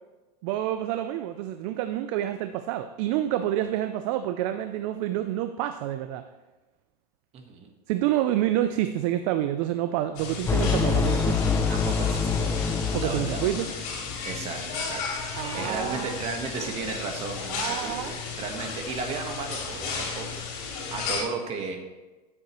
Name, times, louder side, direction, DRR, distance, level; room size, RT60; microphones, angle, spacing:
voice 1, 0.4-6.3 7.9-11.5 12.9-13.7 15.4-16.2 17.5-18.2, right 12 dB, 50° right, 9 dB, 0.5 m, -28 dB
voice 2, 7.3-7.7 11.7-12.6 13.0-13.5 14.2-15.0 15.3-18.0 18.4-21.8, right 5 dB, 30° right, 4 dB, 1.4 m, -35 dB
sound 1, 10.1-21.2, left 5 dB, 55° left, 3.5 m, -34 dB
sound 2, 10.5-14.1, left 5 dB, 10° left, 0.5 m, -25 dB
13.0 x 7.7 x 3.1 m, 1.2 s
supercardioid pair, 140°, 21 cm